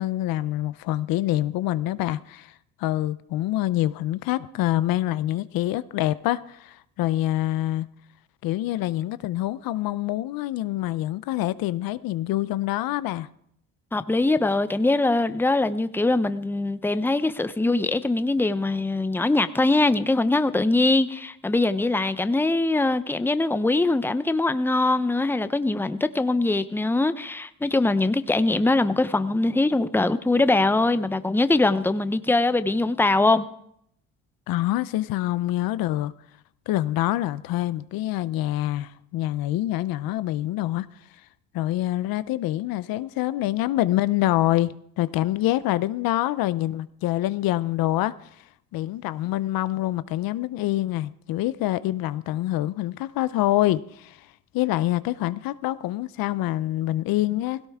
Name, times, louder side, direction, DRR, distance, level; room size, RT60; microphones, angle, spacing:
voice 1, 0.0-2.5 2.8-7.9 8.4-13.3 34.5-36.1 36.7-40.9 41.5-54.3 54.5-57.6, left 15 dB, 75° left, 0.6 m, -26 dB
voice 2, 13.9-33.4, left 2 dB, 5° left, 0.7 m, -22 dB
17.0 x 16.5 x 3.6 m
cardioid pair, 85°, 35 cm